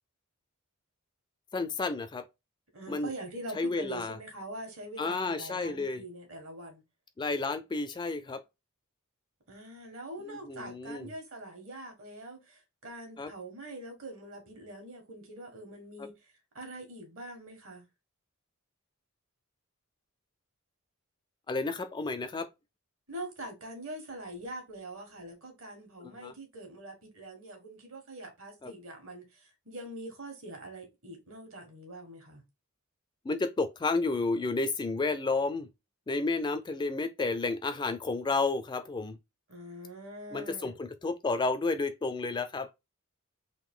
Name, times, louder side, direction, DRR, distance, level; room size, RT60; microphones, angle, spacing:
voice 1, 1.5-2.2 2.9-3.1 3.6-4.2 5.0-6.0 7.2-8.4 10.3-11.1 13.2-13.3 21.5-22.5 26.0-26.3 28.6-28.7 33.2-35.7 36.1-39.2 40.3-42.7, left 3 dB, 20° left, 0.3 m, -31 dB
voice 2, 2.7-6.8 9.5-16.3 16.5-17.8 23.1-32.4 39.5-40.8, right 1 dB, 65° right, 1.6 m, -44 dB
3.8 x 2.6 x 3.6 m
head